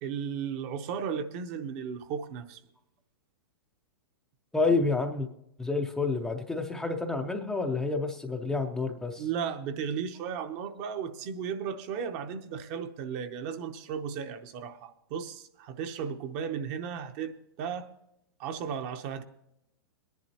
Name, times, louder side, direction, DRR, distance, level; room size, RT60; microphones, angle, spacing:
voice 1, 0.0-2.6 9.2-17.9 18.4-19.2, right 7 dB, 35° right, 9 dB, 0.8 m, -35 dB
voice 2, 4.5-5.3 5.6-9.2, left 3 dB, 5° left, 2 dB, 0.5 m, -29 dB
22.0 x 10.5 x 2.9 m, 0.80 s
hypercardioid pair, 155°, 13 cm